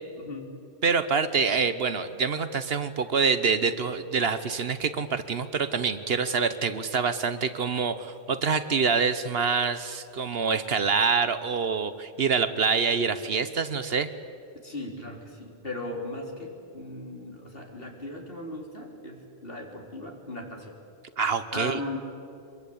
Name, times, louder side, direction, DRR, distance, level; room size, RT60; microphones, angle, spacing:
voice 1, 0.2-0.6 14.6-20.8 21.5-22.0, left 1 dB, 55° left, 1 dB, 3.7 m, -37 dB
voice 2, 0.8-14.1 21.2-21.8, right 5 dB, 60° right, 12 dB, 1.1 m, -26 dB
24.5 x 22.0 x 8.6 m, 2.5 s
omnidirectional pair, 1.2 m